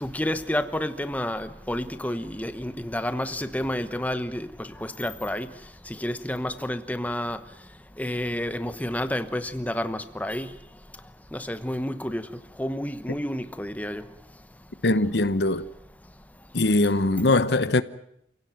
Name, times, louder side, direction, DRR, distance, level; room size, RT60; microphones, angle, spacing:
voice 1, 0.0-4.5 5.0-5.5 6.0-7.4 8.0-10.5 11.3-12.2 12.6-14.0, left 1 dB, 10° left, 1.0 m, -29 dB
voice 2, 14.8-15.6 16.5-17.8, left 2 dB, 65° left, 1.0 m, -21 dB
28.5 x 17.0 x 9.2 m
head